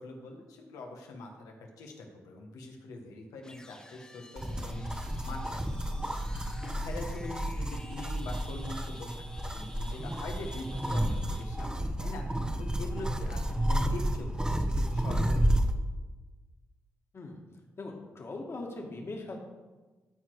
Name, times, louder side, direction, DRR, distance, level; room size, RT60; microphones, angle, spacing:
voice 1, 0.0-4.9 5.2-6.2 6.6-12.2 12.5-15.8, left 2 dB, 85° left, 2 dB, 1.4 m, -44 dB
sound 1, 3.4-11.7, left 1 dB, 15° left, 1.1 m, -52 dB
sound 2, 4.4-15.7, right 1 dB, 15° right, 0.9 m, -31 dB
voice 2, 17.8-19.4, left 2 dB, 50° left, 1 dB, 2.0 m, -40 dB
13.5 x 4.5 x 4.7 m, 1.3 s
supercardioid pair, 55°, 6 cm